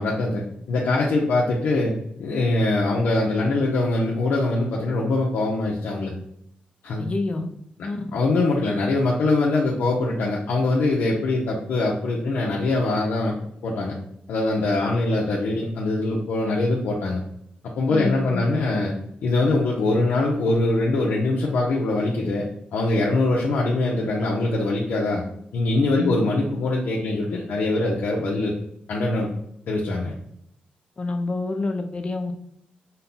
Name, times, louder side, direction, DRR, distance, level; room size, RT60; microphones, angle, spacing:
voice 1, 0.0-1.9 2.2-6.1 6.8-7.0 8.1-13.3 13.6-14.0 14.3-17.2 17.8-18.9 19.2-25.2 25.5-28.5 28.9-29.3 29.7-30.1, left 2 dB, 80° left, -3 dB, 0.8 m, -23 dB
voice 2, 7.0-7.5 7.8-8.0 17.9-18.5 26.0-26.2 31.0-32.3, left 3 dB, 35° left, 5 dB, 0.6 m, -27 dB
5.4 x 2.3 x 4.0 m, 0.73 s
cardioid pair, 105°, 3 cm